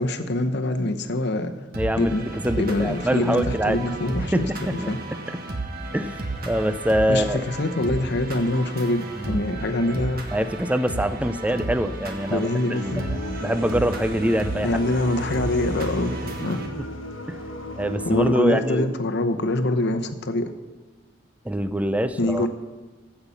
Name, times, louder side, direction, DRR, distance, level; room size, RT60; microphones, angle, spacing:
voice 1, 0.0-1.5 2.0-2.2 2.6-5.0 7.1-10.3 12.3-13.0 14.6-16.1 16.4-16.6 18.0-20.5 22.2-22.5, left 1 dB, 60° left, 7 dB, 0.9 m, -24 dB
voice 2, 1.7-2.1 2.4-3.8 4.3-4.9 5.9-7.4 9.2-9.4 10.3-13.1 13.4-14.7 16.8-16.9 17.3-17.4 17.8-18.9 21.4-22.5, equal, 5° right, 11 dB, 0.5 m, -24 dB
sound 1, 1.7-16.7, right 2 dB, 50° right, 1.4 m, -33 dB
sound 2, 12.8-18.3, left 1 dB, 75° left, 1.3 m, -34 dB
15.0 x 5.8 x 7.1 m, 1.4 s
head